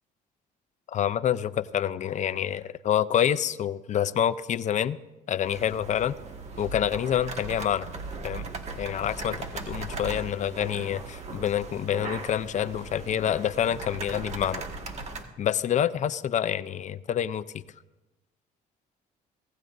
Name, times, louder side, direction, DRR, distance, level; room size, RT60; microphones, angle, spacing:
voice 1, 0.9-5.0 5.3-6.1 6.6-7.9 8.2-8.5 8.8-14.6 15.4-17.6, left 10 dB, 45° left, 15 dB, 0.6 m, -27 dB
sound 1, 5.4-15.2, right 3 dB, 40° right, 1.8 m, -38 dB
25.0 x 17.5 x 2.6 m, 1.1 s
cardioid pair, 110°, 17 cm